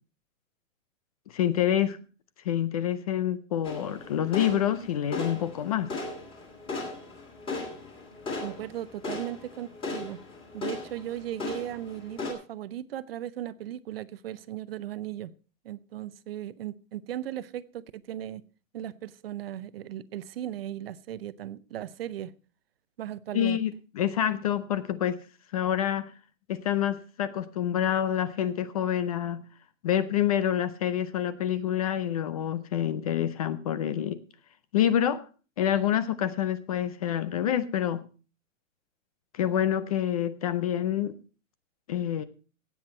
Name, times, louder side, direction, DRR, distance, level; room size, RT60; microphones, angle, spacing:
voice 1, 1.3-2.0 2.4-6.0 23.3-25.2 25.5-26.1 26.5-29.4 29.8-34.2 34.7-35.2 35.6-38.0 39.3-41.2 41.9-42.2, left 10 dB, 30° left, 15 dB, 0.5 m, -27 dB
sound 1, 3.6-12.3, left 3 dB, 15° left, 2.6 m, -37 dB
voice 2, 8.4-10.2 10.5-15.3 15.6-18.4 18.7-22.3 23.0-23.6, right 12 dB, 50° right, 17 dB, 0.6 m, -37 dB
17.0 x 8.0 x 4.3 m, 0.37 s
hypercardioid pair, 160°, 39 cm